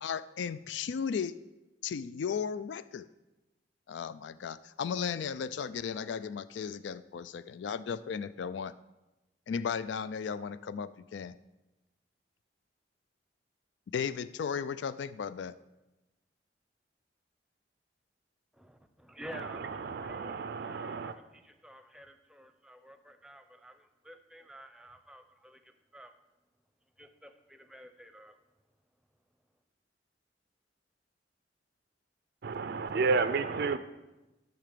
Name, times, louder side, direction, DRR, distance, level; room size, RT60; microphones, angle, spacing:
voice 1, 0.0-1.4 1.8-3.1 3.9-8.8 9.5-11.4 13.9-15.6, left 6 dB, 75° left, 15 dB, 0.3 m, -35 dB
voice 2, 18.5-26.1 27.0-28.4, equal, 5° right, 8 dB, 0.7 m, -51 dB
voice 3, 19.3-21.2 32.4-33.8, right 4 dB, 60° right, 12 dB, 0.4 m, -31 dB
10.5 x 5.8 x 6.7 m, 1.0 s
head